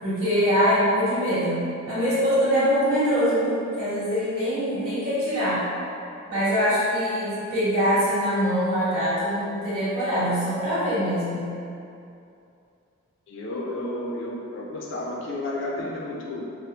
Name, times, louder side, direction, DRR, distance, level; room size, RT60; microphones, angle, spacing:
voice 1, 0.0-5.6 6.3-11.5, equal, 85° right, -12 dB, 1.5 m, -23 dB
voice 2, 13.3-16.4, left 1 dB, 55° left, -3 dB, 0.4 m, -32 dB
4.2 x 2.0 x 2.6 m, 2.6 s
head